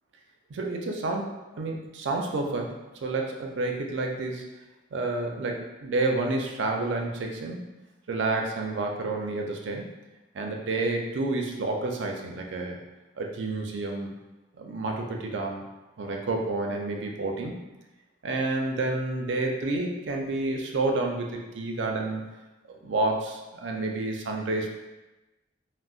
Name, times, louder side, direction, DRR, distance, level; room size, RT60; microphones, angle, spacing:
voice 1, 0.5-2.7 3.0-4.4 4.9-7.6 8.1-9.9 10.3-12.8 13.2-14.1 14.5-15.6 16.0-17.6 18.2-22.2 22.8-24.7, right 2 dB, 75° right, 1 dB, 0.4 m, -29 dB
3.8 x 2.0 x 2.4 m, 1.1 s
head